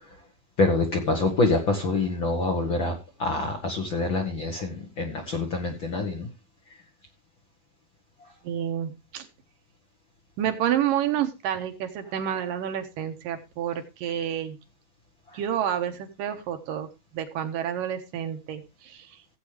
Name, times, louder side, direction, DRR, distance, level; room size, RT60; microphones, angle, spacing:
voice 1, 0.6-2.9 3.2-6.3, left 3 dB, 50° left, 1.6 m, -26 dB
voice 2, 8.4-9.3 10.4-14.6 15.3-16.9 17.1-19.2, right 10 dB, 75° right, 2.9 m, -29 dB
15.5 x 8.4 x 3.3 m
omnidirectional pair, 4.0 m